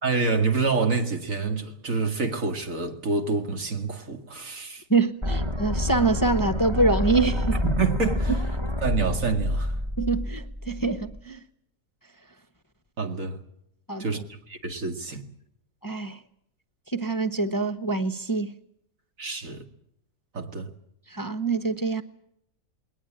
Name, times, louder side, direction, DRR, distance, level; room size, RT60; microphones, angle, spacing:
voice 1, 0.0-4.8 7.6-8.4 8.8-9.8 13.0-13.4 14.0-14.2 14.5-15.2 19.2-19.6 20.3-20.7, right 4 dB, 65° right, 2.5 m, -27 dB
voice 2, 4.9-7.6 8.3-8.4 10.0-11.4 13.9-14.2 15.8-16.2 16.9-18.5 21.1-22.0, right 3 dB, 20° left, 0.7 m, -25 dB
sound 1, 5.2-11.2, left 1 dB, 20° right, 1.6 m, -28 dB
21.0 x 19.0 x 8.8 m
omnidirectional pair, 1.5 m